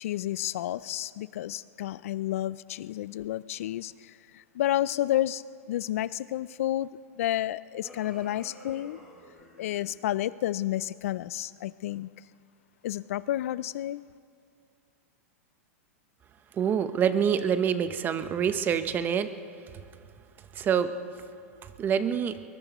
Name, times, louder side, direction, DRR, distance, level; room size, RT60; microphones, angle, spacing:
voice 1, 0.0-5.4 5.7-9.0 9.6-12.1 12.8-14.0, left 13 dB, 70° left, 0.4 m, -31 dB
sound 1, 7.8-9.9, left 1 dB, 5° right, 5.2 m, -50 dB
voice 2, 16.5-19.3 20.5-20.9 21.6-22.4, right 8 dB, 25° right, 0.9 m, -26 dB
22.0 x 21.5 x 3.0 m
hypercardioid pair, 130°, 8 cm